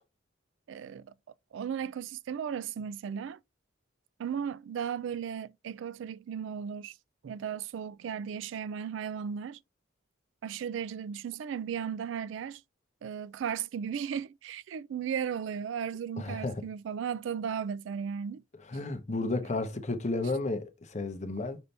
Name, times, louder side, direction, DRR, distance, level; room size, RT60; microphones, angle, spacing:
voice 1, 0.7-1.1 1.5-3.4 4.2-6.9 7.2-9.6 10.4-12.6 13.0-18.4, right 7 dB, 70° right, 0.3 m, -35 dB
voice 2, 16.2-16.6 18.7-21.6, left 2 dB, 35° left, 0.7 m, -32 dB
5.4 x 2.7 x 3.3 m
head